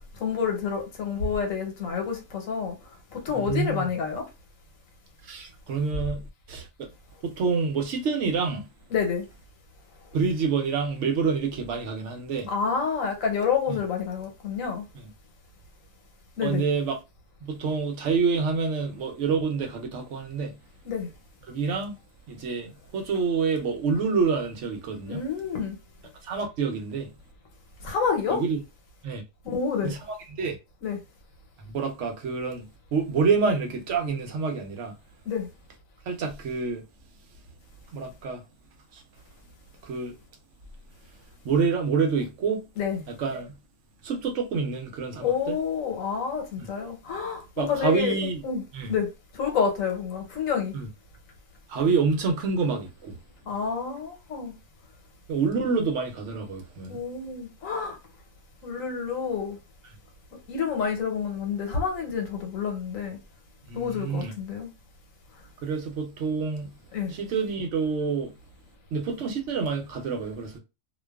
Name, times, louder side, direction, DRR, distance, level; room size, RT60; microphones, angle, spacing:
voice 1, 0.2-2.7 3.1-4.2 8.9-9.2 12.5-14.8 16.4-16.6 20.8-21.1 25.0-25.8 27.8-28.4 29.4-29.9 30.8-31.0 35.3-35.5 42.8-43.0 45.2-48.1 48.4-48.6 48.9-49.1 49.3-50.8 53.5-54.5 56.9-58.0 58.6-59.6 60.5-63.2 63.7-64.7 66.9-67.1, left 6 dB, 90° left, 1.2 m, -28 dB
voice 2, 3.3-3.8 5.2-6.9 7.2-8.7 10.1-12.5 13.7-13.8 14.9-15.1 16.4-17.0 17.4-20.6 21.5-22.0 22.3-25.2 26.2-27.1 28.3-28.6 29.0-29.2 29.8-30.0 30.4-30.6 31.7-35.0 36.1-36.8 37.9-38.4 38.9-39.0 39.8-40.2 41.4-42.6 43.1-43.5 44.0-45.6 46.6-46.7 47.6-48.4 48.7-49.0 50.7-50.9 51.7-53.2 55.3-57.0 63.7-64.3 65.6-66.7 67.1-68.3 68.9-70.6, right 5 dB, 70° right, 0.9 m, -27 dB
2.5 x 2.3 x 2.2 m
omnidirectional pair, 1.3 m